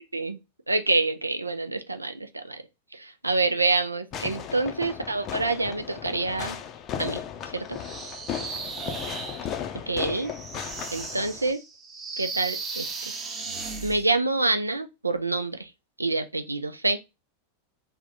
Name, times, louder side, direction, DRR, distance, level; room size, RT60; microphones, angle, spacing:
voice 1, 0.7-2.6 2.9-6.6 7.0-7.2 7.5-7.8 9.9-10.3 10.9-11.6 12.2-13.1 13.8-15.7 16.0-17.0, right 3 dB, 80° right, 0.4 m, -27 dB
Fireworks, 4.1-11.5, left 8 dB, 35° left, 0.5 m, -36 dB
sound 1, 7.7-14.1, right 4 dB, 25° right, 0.7 m, -36 dB
3.4 x 2.2 x 3.7 m
figure-of-eight pair, 90°, 0 cm